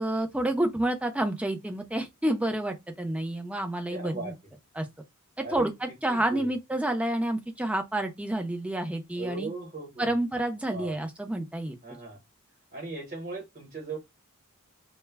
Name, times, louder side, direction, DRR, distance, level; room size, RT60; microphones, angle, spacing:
voice 1, 0.0-4.3 4.8-4.9 5.5-9.5 10.0-11.8, right 1 dB, 5° right, 0.4 m, -29 dB
voice 2, 3.9-4.3 5.4-5.7 6.1-6.5 9.1-10.2 10.7-11.0 11.8-12.2 12.7-14.0, right 4 dB, 40° right, 1.0 m, -37 dB
2.1 x 2.1 x 3.3 m
head